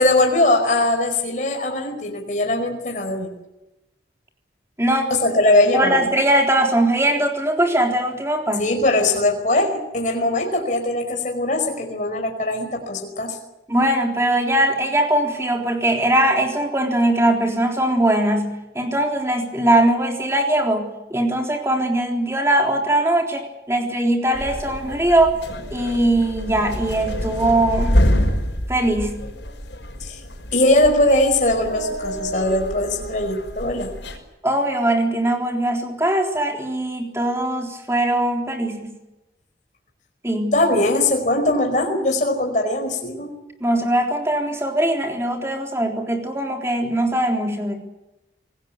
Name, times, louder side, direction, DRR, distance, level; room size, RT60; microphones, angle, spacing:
voice 1, 0.0-3.3 5.1-6.1 8.6-13.4 30.0-30.2 30.5-33.9 40.5-43.3, left 1 dB, 45° left, 3 dB, 5.1 m, -20 dB
voice 2, 4.8-5.1 5.7-8.7 13.7-25.4 25.7-28.1 28.7-29.2 34.4-39.0 40.2-40.6 43.6-47.8, right 1 dB, 15° right, 3 dB, 3.6 m, -21 dB
sound 1, 24.3-34.2, equal, 85° left, 5.5 m, -26 dB
26.0 x 19.0 x 8.3 m, 0.98 s
head